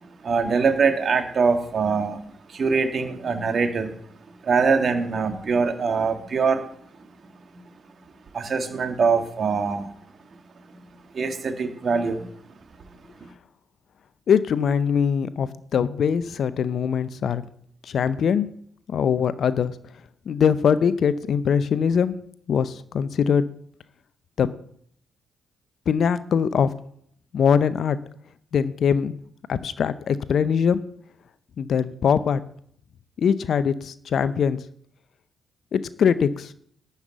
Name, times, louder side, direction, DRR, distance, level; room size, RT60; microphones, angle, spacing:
voice 1, 0.0-2.2 2.5-4.0 4.3-6.6 8.3-9.9 10.7-10.9 11.1-12.3 13.2-13.3, right 5 dB, 50° right, 1.9 m, -23 dB
voice 2, 14.3-17.4 17.8-18.5 18.9-19.8 20.3-22.2 22.5-23.4 24.4-24.5 25.9-26.7 27.3-28.0 28.5-29.2 29.5-30.8 31.6-32.4 33.2-34.6 35.7-36.5, left 7 dB, 60° left, 0.6 m, -22 dB
12.0 x 5.7 x 8.0 m
hypercardioid pair, 40°, 0 cm